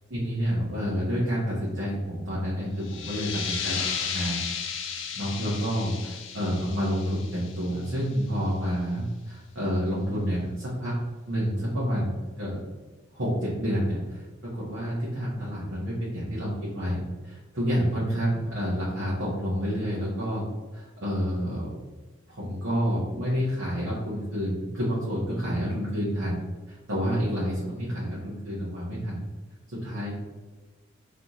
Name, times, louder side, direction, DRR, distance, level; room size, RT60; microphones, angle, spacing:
voice 1, 0.1-4.4 4.7-4.9 5.1-10.9 11.3-12.6 13.1-20.5 20.7-21.7 22.3-29.2 29.7-30.2, equal, 85° right, -8 dB, 1.2 m, -29 dB
sound 1, 2.8-8.2, left 7 dB, 65° left, 0.5 m, -34 dB
4.0 x 3.2 x 3.0 m, 1.2 s
head